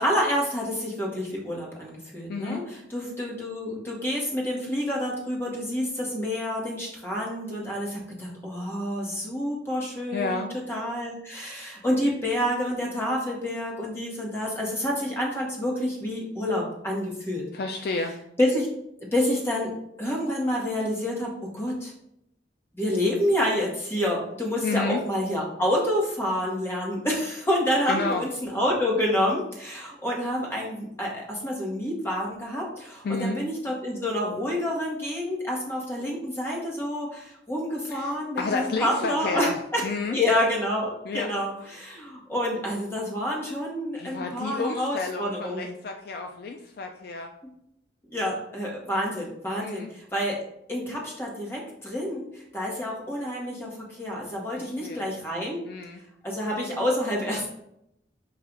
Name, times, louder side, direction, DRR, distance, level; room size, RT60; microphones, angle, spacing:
voice 1, 0.0-17.4 18.4-18.7 19.1-19.7 20.0-21.9 22.7-39.8 40.1-45.7 48.1-50.4 50.7-55.6 56.2-57.5, left 1 dB, 10° left, -3 dB, 1.0 m, -28 dB
voice 2, 2.3-2.6 10.1-10.5 17.5-18.1 24.6-25.0 27.9-28.3 33.0-33.4 37.9-39.5 39.8-40.2 41.1-41.3 44.0-47.3 49.6-49.9 54.6-55.0 55.6-56.0, left 3 dB, 50° left, 4 dB, 0.3 m, -31 dB
5.8 x 2.4 x 3.8 m, 0.78 s
head